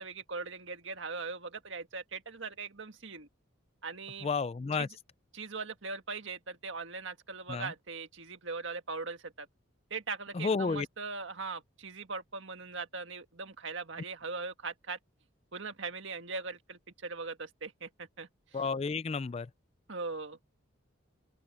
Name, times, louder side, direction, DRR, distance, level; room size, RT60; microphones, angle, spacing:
voice 1, 0.0-3.3 3.8-4.3 4.7-4.9 5.3-9.5 9.9-15.0 15.5-18.3 19.9-20.4, right 4 dB, 70° right, 1.8 m, -40 dB
voice 2, 4.2-4.9 7.5-7.7 10.3-10.9 18.5-19.5, left 4 dB, 30° left, 0.3 m, -31 dB
open air
head